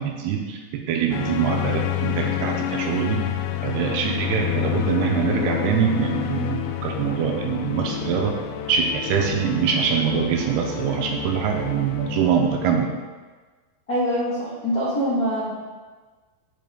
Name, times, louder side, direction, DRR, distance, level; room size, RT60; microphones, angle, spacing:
voice 1, 0.0-3.3 3.6-8.4 8.7-12.9, right 7 dB, 80° right, 3 dB, 2.6 m, -24 dB
sound 1, 1.1-12.7, left 11 dB, 85° left, 2.8 m, -29 dB
voice 2, 13.9-15.5, equal, 65° left, -10 dB, 0.8 m, -24 dB
7.8 x 7.4 x 3.6 m, 1.4 s
omnidirectional pair, 4.9 m